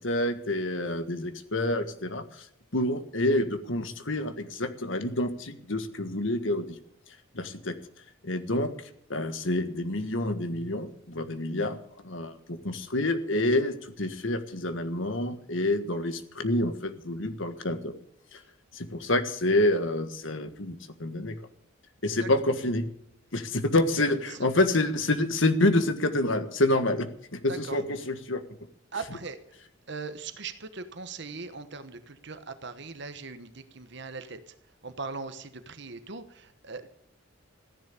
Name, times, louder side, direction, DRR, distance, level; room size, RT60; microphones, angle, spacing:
voice 1, 0.0-2.5 2.7-6.8 7.3-7.7 8.2-8.7 9.1-11.8 12.0-17.9 18.3-18.4 18.7-21.4 22.0-22.9 23.3-28.4, left 1 dB, 70° left, 9 dB, 1.6 m, -28 dB
voice 2, 24.0-24.4 27.5-27.8 28.9-29.4 29.9-34.5 34.8-36.9, right 4 dB, 55° right, 10 dB, 1.2 m, -40 dB
15.0 x 10.5 x 6.8 m, 0.70 s
head